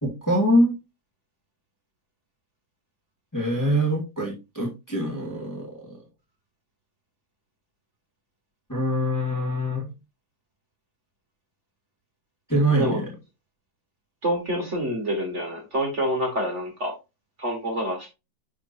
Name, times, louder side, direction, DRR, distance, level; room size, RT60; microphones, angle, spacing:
voice 1, 0.0-0.7 3.3-6.0 8.7-10.0 12.5-13.1, equal, 10° left, 1.9 m, -24 dB
voice 2, 14.2-16.9 17.4-18.1, equal, 40° right, 2.1 m, -27 dB
10.5 x 4.4 x 2.7 m
omnidirectional pair, 2.1 m